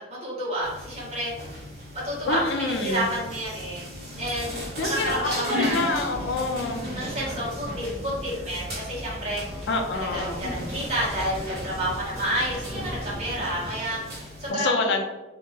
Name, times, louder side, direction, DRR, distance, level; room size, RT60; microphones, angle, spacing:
voice 1, 0.0-1.3 2.0-3.8 4.2-6.1 6.7-9.7 9.9-15.0, right 1 dB, 35° right, -8 dB, 1.3 m, -30 dB
sound 1, 0.6-14.5, left 1 dB, 60° right, 1.0 m, -36 dB
voice 2, 2.3-3.1 4.8-6.8 9.7-10.4 14.5-15.0, left 3 dB, 85° left, 3 dB, 0.5 m, -27 dB
sound 2, 5.9-14.4, equal, 5° left, 0.8 m, -39 dB
2.8 x 2.6 x 2.8 m, 1.1 s
head